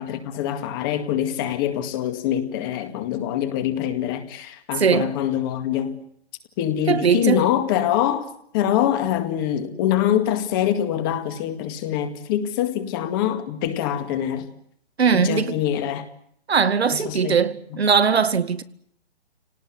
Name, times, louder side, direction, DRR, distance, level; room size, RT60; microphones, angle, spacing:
voice 1, 0.0-6.0 6.6-8.3 8.5-14.5 15.1-16.1 17.0-17.4, left 11 dB, 20° left, 2.0 m, -24 dB
voice 2, 4.7-5.1 6.9-7.4 15.0-15.6 16.5-18.6, right 6 dB, 70° right, 2.1 m, -20 dB
28.5 x 19.0 x 9.8 m
hypercardioid pair, 160°, 33 cm